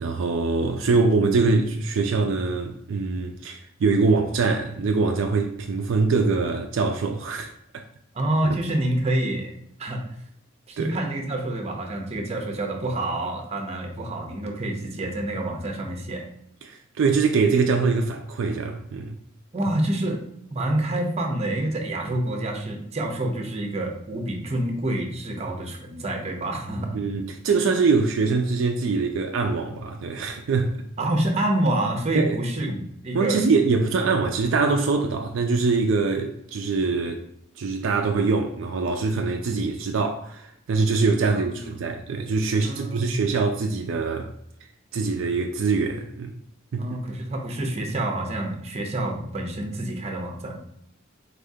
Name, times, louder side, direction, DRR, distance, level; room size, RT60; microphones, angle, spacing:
voice 1, 0.0-7.5 8.5-8.6 10.8-11.0 16.6-19.2 26.9-30.8 32.1-32.4 32.7-32.8 33.1-37.2 37.6-44.3 44.9-46.3 46.7-47.0, right 4 dB, 65° right, 0.4 m, -23 dB
voice 2, 8.1-9.5 9.8-10.0 10.7-16.3 19.5-20.2 20.5-27.0 31.0-33.4 41.2-41.7 42.6-43.2 46.8-50.6, right 1 dB, 30° right, 0.7 m, -27 dB
4.1 x 3.5 x 2.7 m
head